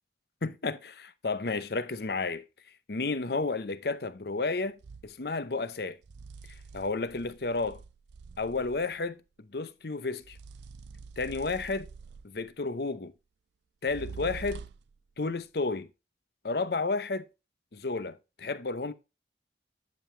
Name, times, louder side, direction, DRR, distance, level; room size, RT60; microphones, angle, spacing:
voice 1, 0.4-2.4 2.9-4.8 5.0-6.0 6.7-7.8 8.4-9.2 9.5-10.4 11.2-11.9 12.2-13.1 13.8-14.6 15.2-15.9 16.4-17.3 17.7-18.9, left 3 dB, 60° left, 0.7 m, -31 dB
sound 1, 4.8-5.1 6.0-9.0 10.2-12.5 13.8-15.0, right 5 dB, 75° right, 0.4 m, -46 dB
10.5 x 5.2 x 3.2 m
head